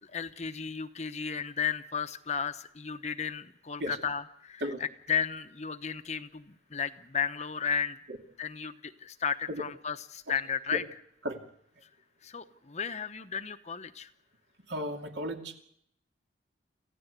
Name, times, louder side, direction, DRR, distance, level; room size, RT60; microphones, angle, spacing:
voice 1, 0.0-8.0 8.4-10.8 12.2-14.1, left 7 dB, 35° left, 10 dB, 0.9 m, -34 dB
voice 2, 14.7-15.6, equal, 70° right, 3 dB, 2.6 m, -34 dB
27.0 x 15.0 x 8.2 m, 0.71 s
head